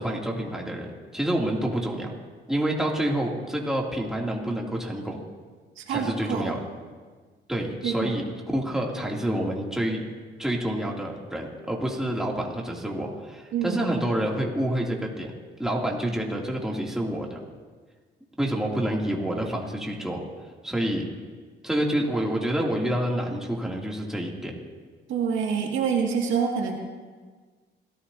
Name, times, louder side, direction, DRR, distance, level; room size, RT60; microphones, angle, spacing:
voice 1, 0.0-2.1 2.5-5.2 5.9-6.6 7.5-10.0 10.4-15.3 15.6-17.4 18.4-20.2 20.6-21.1 21.6-24.6, right 1 dB, ahead, -2 dB, 2.8 m, -28 dB
voice 2, 5.8-6.5 7.8-8.1 13.5-13.8 25.1-26.8, right 6 dB, 85° right, 1 dB, 2.1 m, -26 dB
26.0 x 14.0 x 2.8 m, 1.5 s
cardioid pair, 90°, 20 cm